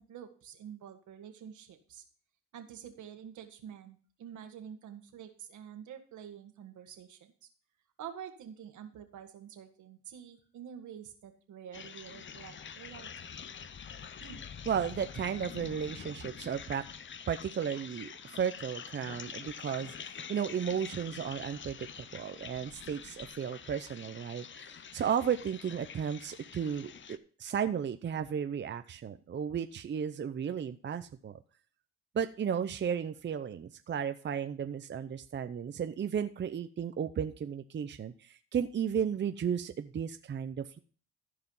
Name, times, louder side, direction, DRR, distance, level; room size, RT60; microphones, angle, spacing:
voice 1, 0.0-2.0 2.5-7.5 8.0-13.1 14.2-14.4, right 9 dB, 75° right, 6 dB, 1.8 m, -48 dB
sound 1, 11.7-27.2, left 7 dB, 40° left, 0.8 m, -46 dB
voice 2, 14.7-16.8 17.3-31.4 32.1-40.8, right 8 dB, 35° right, 9 dB, 0.6 m, -34 dB
14.5 x 4.9 x 5.5 m, 0.42 s
cardioid pair, 90°, 30 cm